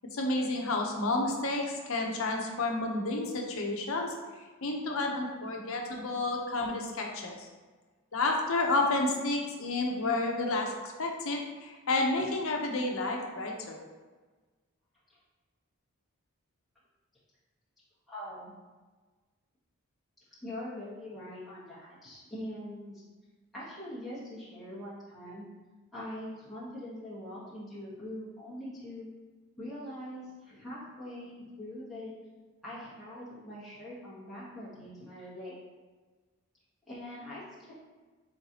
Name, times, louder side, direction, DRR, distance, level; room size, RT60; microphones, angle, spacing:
voice 1, 0.1-4.1 4.6-7.5 8.1-10.7 11.0-13.8, left 2 dB, 65° left, 1 dB, 0.7 m, -30 dB
voice 2, 18.1-18.5 20.4-23.0 23.5-25.5 25.9-29.1 29.6-32.1 32.6-35.5 36.9-37.7, left 1 dB, ahead, -11 dB, 1.3 m, -43 dB
4.3 x 3.9 x 2.8 m, 1.3 s
head